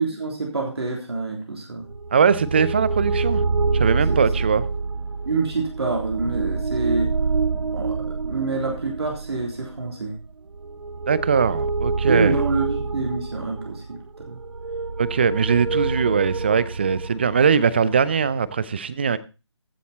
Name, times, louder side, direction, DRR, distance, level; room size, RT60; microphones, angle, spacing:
voice 1, 0.0-1.9 4.1-4.3 5.3-7.1 7.7-8.0 8.2-10.2 12.0-14.4, right 3 dB, 60° right, 3.6 m, -26 dB
sound 1, 1.9-18.6, right 4 dB, 80° right, 0.6 m, -27 dB
voice 2, 2.1-3.4 3.7-4.6 11.1-12.3 15.0-19.2, right 6 dB, 20° right, 0.5 m, -21 dB
14.5 x 7.1 x 4.2 m
figure-of-eight pair, 150°, 15 cm